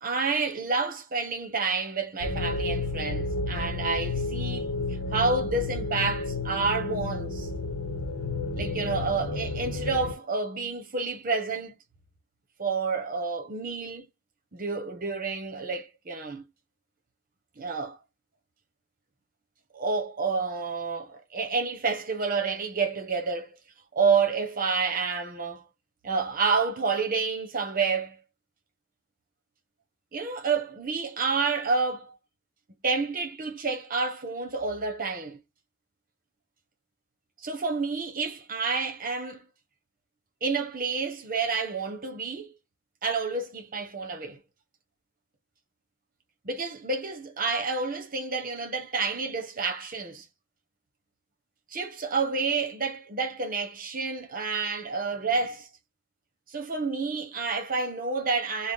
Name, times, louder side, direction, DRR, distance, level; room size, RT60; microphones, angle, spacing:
voice 1, 0.0-4.7 5.1-7.5 8.5-11.7 12.6-14.1 14.5-16.4 17.6-18.0 19.7-23.6 23.9-25.6 26.0-28.2 30.1-32.1 32.8-35.4 37.4-39.4 40.4-42.5 43.0-44.4 46.4-50.2 51.7-55.7 56.5-58.7, right 4 dB, 40° right, 1.0 m, -29 dB
sound 1, 2.2-10.1, left 3 dB, 70° left, 0.9 m, -31 dB
3.5 x 2.2 x 3.7 m
head